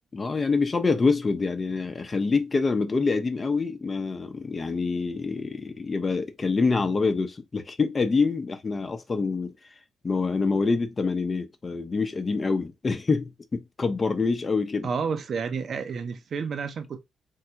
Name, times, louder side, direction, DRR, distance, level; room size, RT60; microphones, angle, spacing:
voice 1, 0.1-9.5 10.0-14.9, left 4 dB, 35° left, 0.7 m, -26 dB
voice 2, 14.8-17.0, right 5 dB, 55° right, 0.6 m, -30 dB
3.5 x 2.2 x 2.8 m
supercardioid pair, 55°, 0 cm